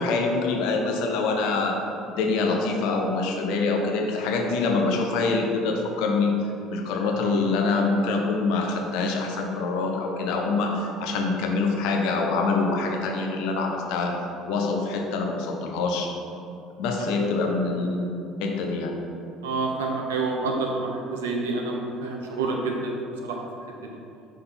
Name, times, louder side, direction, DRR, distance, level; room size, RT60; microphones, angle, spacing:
voice 1, 0.0-1.8 2.1-6.3 6.7-14.1 14.5-16.1 16.8-18.1 18.4-18.9, left 3 dB, 60° left, 1 dB, 0.8 m, -25 dB
voice 2, 19.4-22.9 23.2-23.4, right 3 dB, 75° right, 0 dB, 0.8 m, -28 dB
5.8 x 3.7 x 5.6 m, 2.6 s
figure-of-eight pair, 60°, 0 cm